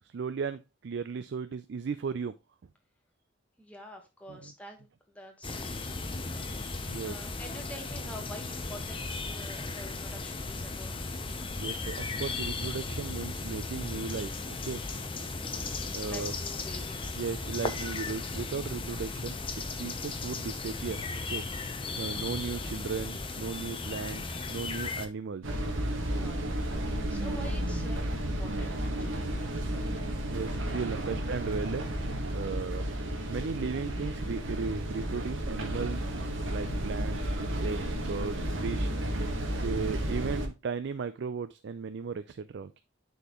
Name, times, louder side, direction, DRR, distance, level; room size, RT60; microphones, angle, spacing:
voice 1, 0.1-0.6 0.8-2.3 4.3-4.4 6.9-7.2 11.6-14.8 15.9-16.3 17.2-21.0 21.3-25.6 30.3-31.9 32.3-32.9 33.3-38.9 39.6-42.8, right 5 dB, 60° right, 0.4 m, -36 dB
voice 2, 3.6-5.8 7.0-11.1 15.5-17.2 26.1-29.6 30.7-30.8, equal, 5° left, 1.3 m, -48 dB
sound 1, 5.4-25.1, left 3 dB, 25° left, 0.7 m, -36 dB
sound 2, 25.4-40.5, right 1 dB, 80° right, 1.4 m, -32 dB
9.8 x 4.3 x 3.0 m
head